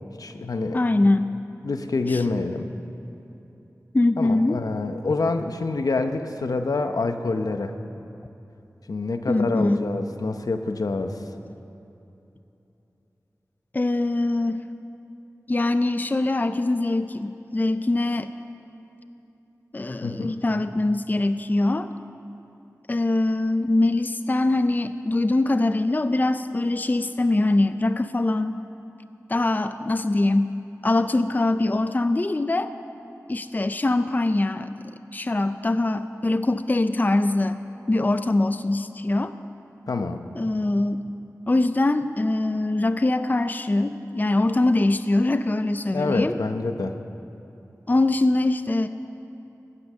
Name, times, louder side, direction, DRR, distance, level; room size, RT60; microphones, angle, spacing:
voice 1, 0.2-0.8 1.6-2.6 4.2-7.7 8.9-11.2 20.0-20.4 39.9-40.2 45.9-47.0, left 3 dB, 85° left, 7 dB, 0.8 m, -26 dB
voice 2, 0.7-1.3 2.1-2.2 3.9-4.6 9.3-9.8 13.7-14.6 15.5-18.3 19.7-21.9 22.9-28.6 29.3-30.6 30.8-32.7 33.3-34.7 35.1-37.6 37.9-39.3 40.4-41.0 41.5-46.4 47.9-48.9, left 2 dB, 30° left, 11 dB, 0.4 m, -23 dB
15.5 x 9.8 x 6.7 m, 2.9 s
wide cardioid pair, 55°, 6 cm